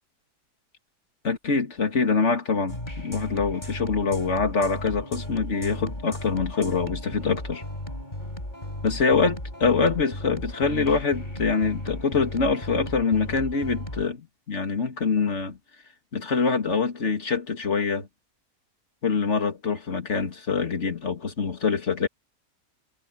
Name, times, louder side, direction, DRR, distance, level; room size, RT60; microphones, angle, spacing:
voice 1, 1.2-7.6 8.8-15.6 16.1-18.1 19.0-22.1, left 5 dB, 45° left, 2.5 m, -25 dB
sound 1, 2.7-14.1, left 1 dB, 25° left, 7.3 m, -35 dB
omnidirectional pair, 1.7 m